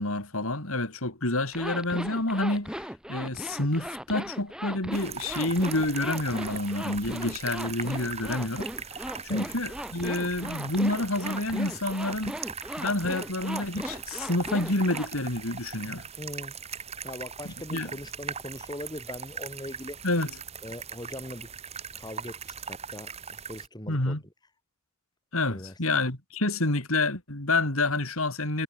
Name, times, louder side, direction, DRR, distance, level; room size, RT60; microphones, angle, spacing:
voice 1, 0.0-8.7 9.2-12.4 12.8-16.1 17.7-17.9 20.0-20.3 23.9-24.2 25.3-28.6, left 2 dB, 75° left, 4.3 m, -28 dB
Zipper (clothing), 1.5-15.1, equal, 5° right, 2.7 m, -38 dB
sound 1, 4.9-23.7, right 6 dB, 30° right, 2.0 m, -40 dB
voice 2, 16.2-16.5 17.0-20.0 20.6-21.5 21.9-24.2 25.5-25.7, left 1 dB, 20° left, 2.9 m, -40 dB
head